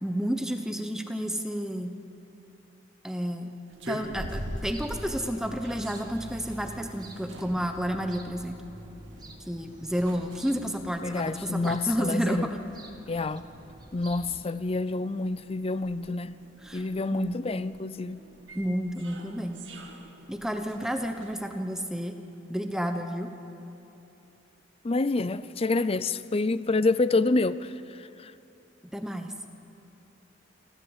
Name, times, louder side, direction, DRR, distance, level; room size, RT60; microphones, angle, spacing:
voice 1, 0.0-1.9 3.0-3.5 3.9-8.6 9.5-12.6 16.6-16.8 17.1-17.4 18.5-19.6 20.3-22.2 22.5-23.3 28.9-29.3, equal, 5° right, 0.9 m, -31 dB
sound 1, 3.7-21.3, right 1 dB, 75° right, 2.3 m, -45 dB
sound 2, 4.2-14.4, right 1 dB, 20° right, 1.7 m, -47 dB
voice 2, 11.0-12.5 13.1-13.5 13.9-16.4 16.7-18.3 24.8-28.3, left 3 dB, 30° left, 0.5 m, -28 dB
28.0 x 13.5 x 8.1 m
head